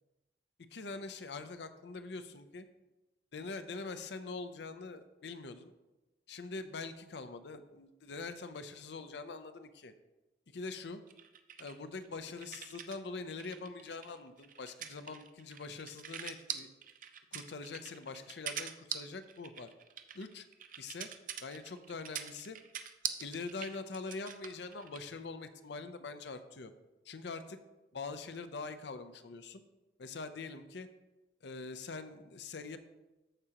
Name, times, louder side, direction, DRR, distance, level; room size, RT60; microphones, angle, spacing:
voice 1, 0.7-2.7 3.3-5.7 6.3-9.9 10.5-11.0 11.6-16.7 17.3-19.7 20.1-20.5 20.8-21.1 21.4-22.6 23.2-26.7 27.0-27.6 27.9-29.6 30.0-30.9 31.4-32.8, left 3 dB, 70° left, 10 dB, 0.6 m, -44 dB
sound 1, 11.1-13.0 13.3-25.1, right 9 dB, 45° right, 0.5 m, -43 dB
13.5 x 4.9 x 2.9 m, 1.0 s
head